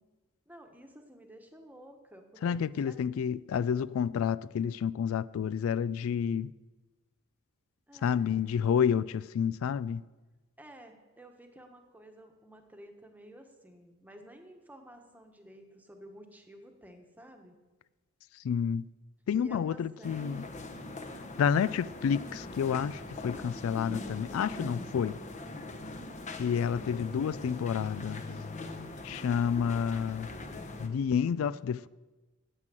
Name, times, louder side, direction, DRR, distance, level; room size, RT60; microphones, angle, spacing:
voice 1, 0.5-3.0 7.9-8.5 10.6-17.5 19.4-20.6 25.9-26.4, right 1 dB, 10° right, 1.2 m, -52 dB
voice 2, 2.4-6.5 8.0-10.0 18.4-18.9 19.3-20.4 21.4-25.2 26.4-28.2 29.0-30.3 30.8-31.9, left 7 dB, 75° left, 0.3 m, -29 dB
sound 1, 20.0-30.9, left 2 dB, 35° left, 1.0 m, -42 dB
9.8 x 9.0 x 7.6 m
head